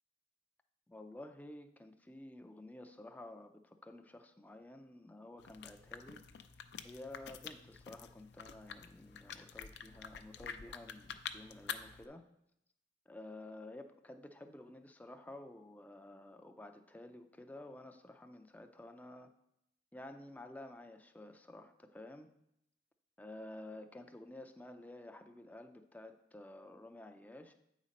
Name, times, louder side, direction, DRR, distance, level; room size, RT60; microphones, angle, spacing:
voice 1, 0.9-6.2 6.8-12.2 13.1-19.3 19.9-22.3 23.2-27.5, left 1 dB, 10° left, 6 dB, 0.4 m, -51 dB
sound 1, 5.4-12.1, left 7 dB, 65° left, 0.4 m, -48 dB
8.3 x 4.2 x 5.1 m, 0.79 s
head